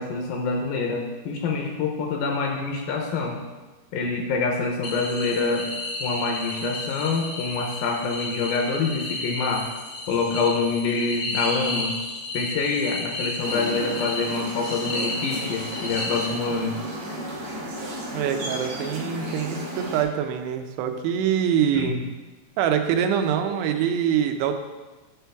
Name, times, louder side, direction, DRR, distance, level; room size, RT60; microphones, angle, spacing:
voice 1, 0.0-3.4 3.9-5.7 6.0-9.6 10.1-11.9 12.3-16.8 21.7-22.0, left 4 dB, 75° left, 1 dB, 2.3 m, -26 dB
sound 1, 4.8-16.8, left 2 dB, 60° left, 1.3 m, -32 dB
sound 2, 13.4-20.0, right 1 dB, 70° right, 1.3 m, -34 dB
voice 2, 18.1-21.9 22.6-24.6, right 8 dB, 85° right, 6 dB, 2.8 m, -24 dB
9.7 x 5.9 x 3.4 m, 1.2 s
omnidirectional pair, 4.7 m